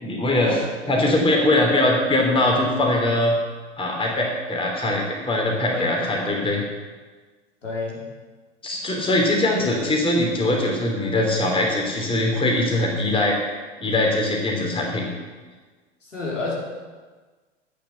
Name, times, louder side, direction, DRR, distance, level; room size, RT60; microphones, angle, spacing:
voice 1, 0.0-3.4 3.8-6.6 8.6-15.0, left 1 dB, 15° left, 0 dB, 3.4 m, -22 dB
voice 2, 5.7-6.0 7.6-8.0 9.5-9.7 16.0-16.5, left 3 dB, 85° left, -3 dB, 3.8 m, -30 dB
12.0 x 9.3 x 7.2 m, 1.4 s
figure-of-eight pair, 90°, 36 cm